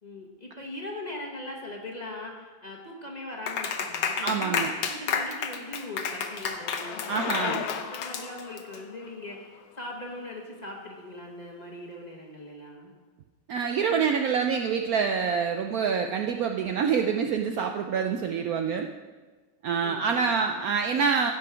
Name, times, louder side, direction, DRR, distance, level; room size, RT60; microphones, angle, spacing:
voice 1, 0.0-12.9 19.8-20.3, left 1 dB, 25° left, -1 dB, 1.3 m, -40 dB
Clapping, 3.5-8.8, left 6 dB, 60° left, 1.3 m, -31 dB
voice 2, 4.2-4.7 7.1-7.6 13.5-18.9 19.6-21.3, right 6 dB, 90° right, 5 dB, 0.7 m, -26 dB
Bicycle, 5.1-10.8, left 9 dB, 90° left, 1.4 m, -38 dB
16.0 x 5.9 x 5.0 m, 1.3 s
omnidirectional pair, 2.2 m